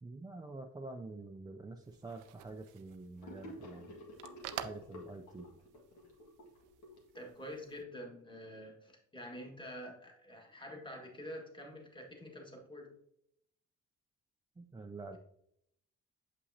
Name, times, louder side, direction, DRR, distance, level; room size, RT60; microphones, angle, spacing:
voice 1, 0.0-3.9 4.6-5.5 14.6-15.2, right 3 dB, 15° right, 2 dB, 0.4 m, -47 dB
sound 1, 1.8-7.8, right 11 dB, 85° right, 0.5 m, -50 dB
Gurgling / Sink (filling or washing), 3.2-7.7, left 1 dB, 70° left, 1.8 m, -51 dB
voice 2, 7.1-12.9, equal, 15° left, 1 dB, 1.7 m, -47 dB
7.0 x 5.6 x 2.7 m, 0.74 s
cardioid pair, 90°, 30 cm